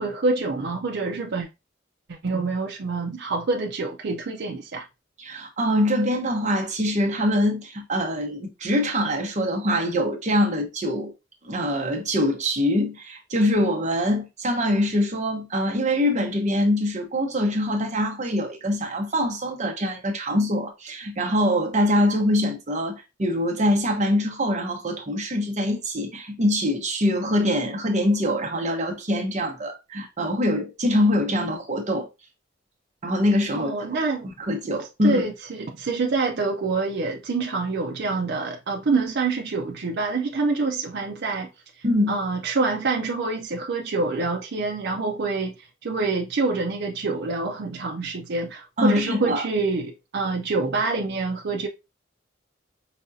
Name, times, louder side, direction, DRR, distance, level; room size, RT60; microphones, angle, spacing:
voice 1, 0.0-1.5 2.1-4.8 33.5-34.3 35.0-41.5 42.1-51.7, right 3 dB, 60° right, 0.5 m, -26 dB
voice 2, 5.2-11.1 11.4-32.1 33.0-34.0 34.2-35.2 41.8-42.2 48.8-49.5, left 1 dB, 40° right, 1.0 m, -24 dB
5.2 x 2.4 x 2.6 m
head